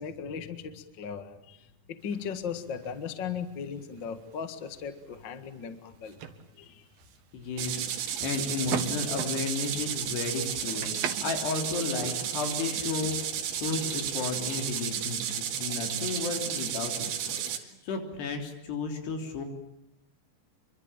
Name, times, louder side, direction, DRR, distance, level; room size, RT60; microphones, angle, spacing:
voice 1, 0.0-6.2 6.6-6.9, left 7 dB, 55° left, 10 dB, 1.3 m, -37 dB
sound 1, 2.0-12.5, right 8 dB, 65° right, 3.2 m, -42 dB
voice 2, 7.3-19.5, left 4 dB, 70° left, 5 dB, 5.4 m, -33 dB
sound 2, 7.6-17.6, right 9 dB, 80° right, 4.2 m, -33 dB
26.5 x 24.0 x 8.9 m, 0.79 s
omnidirectional pair, 5.0 m